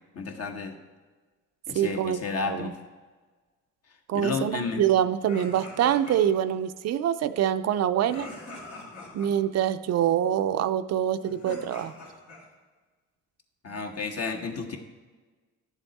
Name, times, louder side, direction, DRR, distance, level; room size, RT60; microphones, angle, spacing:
voice 1, 0.1-0.8 1.7-2.8 4.1-4.8 13.6-14.8, left 4 dB, 55° left, 5 dB, 1.2 m, -32 dB
voice 2, 1.7-2.7 4.1-8.3 9.1-11.9, right 10 dB, 60° right, 11 dB, 0.5 m, -25 dB
sound 1, 5.2-6.5 8.0-9.3 11.1-12.5, left 2 dB, 80° left, 2.5 m, -43 dB
10.5 x 7.2 x 4.0 m, 1.3 s
cardioid pair, 90°, 30 cm